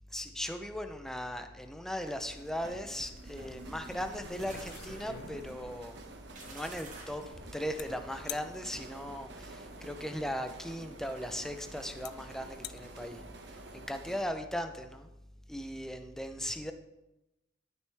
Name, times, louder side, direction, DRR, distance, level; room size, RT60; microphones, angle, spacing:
voice 1, 0.1-6.0 6.5-7.2 7.5-13.2 13.7-15.1 15.5-16.7, equal, ahead, 6 dB, 0.5 m, -38 dB
sound 1, 2.0-14.2, right 2 dB, 60° right, 1.0 m, -49 dB
sound 2, 2.6-8.3, right 2 dB, 40° right, 1.9 m, -51 dB
sound 3, 3.9-4.0 4.4-5.8 7.8-7.9 8.3-8.5 10.4-10.5 11.4-11.5 12.0-12.1 12.5-12.8, left 11 dB, 55° left, 0.4 m, -44 dB
12.5 x 6.2 x 3.4 m, 0.96 s
head